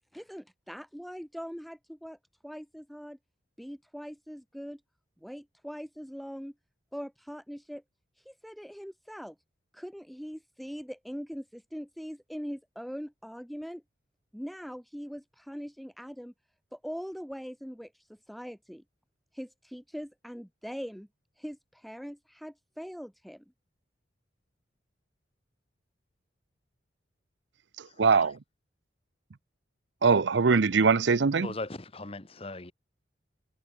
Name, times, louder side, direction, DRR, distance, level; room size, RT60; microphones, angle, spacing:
voice 1, 0.1-2.2 2.4-3.2 3.6-4.8 5.2-6.5 6.9-7.8 8.2-9.4 9.7-13.8 14.3-16.3 16.7-18.8 19.3-21.1 21.4-23.4, equal, ahead, 7.3 m, -41 dB
voice 2, 27.8-28.4 30.0-31.5, right 5 dB, 70° right, 0.6 m, -22 dB
voice 3, 31.4-32.7, left 2 dB, 30° left, 1.3 m, -38 dB
head